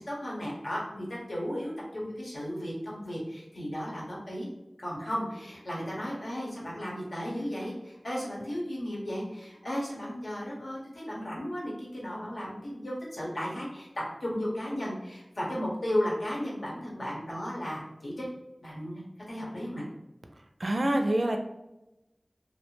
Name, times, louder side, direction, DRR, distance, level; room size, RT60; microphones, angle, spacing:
voice 1, 0.0-4.5 4.8-13.9 14.2-18.2 18.6-19.8, equal, 80° left, -5 dB, 1.0 m, -35 dB
voice 2, 20.6-21.4, right 1 dB, 60° right, 4 dB, 0.4 m, -26 dB
2.6 x 2.1 x 3.0 m, 0.93 s
wide cardioid pair, 50°, 0 cm